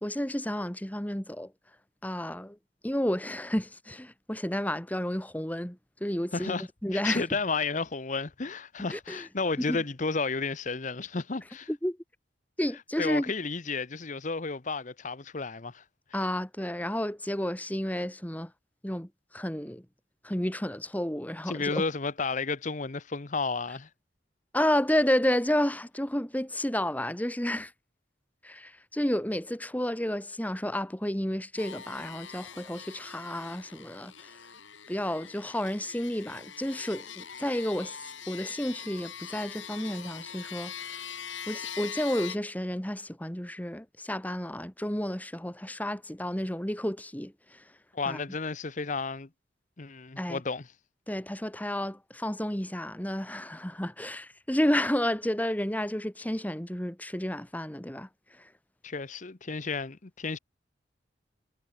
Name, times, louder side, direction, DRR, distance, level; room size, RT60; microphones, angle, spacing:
voice 1, 0.0-1.5 2.0-2.6 2.8-6.5 6.8-7.3 8.9-9.3 9.7-9.8 11.7-12.0 12.6-13.3 16.1-18.5 18.8-19.8 20.2-21.8 24.5-27.7 28.4-34.4 34.9-41.0 41.5-47.6 48.1-48.2 50.2-50.4 51.1-58.5, left 1 dB, 10° left, 1.5 m, -31 dB
voice 2, 6.3-6.7 6.9-11.7 13.0-15.8 21.5-23.9 47.9-49.3 49.8-50.7 58.8-60.4, left 4 dB, 40° left, 0.9 m, -32 dB
sound 1, 31.6-42.4, left 8 dB, 90° left, 5.6 m, -43 dB
head